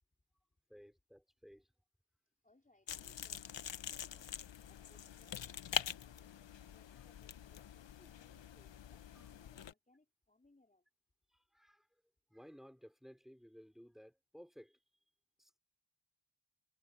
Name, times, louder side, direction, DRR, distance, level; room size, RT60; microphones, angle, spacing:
voice 1, 0.7-1.7 6.9-7.1 11.3-11.9 12.3-14.8 15.4-15.6, equal, ahead, 5.2 m, -58 dB
voice 2, 2.3-4.3 4.6-5.6 5.8-6.3 6.7-10.8, left 2 dB, 15° left, 3.9 m, -70 dB
sound 1, 2.9-9.7, left 9 dB, 65° left, 1.2 m, -45 dB
cardioid pair, 55°, 47 cm